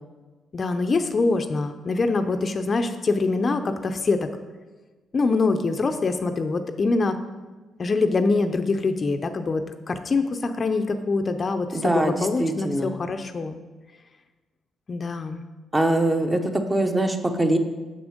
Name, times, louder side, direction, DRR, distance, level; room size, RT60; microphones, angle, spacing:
voice 1, 0.5-4.3 5.1-7.2 7.8-13.6 14.9-15.4, left 3 dB, 40° left, 8 dB, 0.5 m, -24 dB
voice 2, 11.7-12.9 15.7-17.6, right 1 dB, 15° right, 5 dB, 0.8 m, -23 dB
6.8 x 6.1 x 5.1 m, 1.2 s
cardioid pair, 90°, 0 cm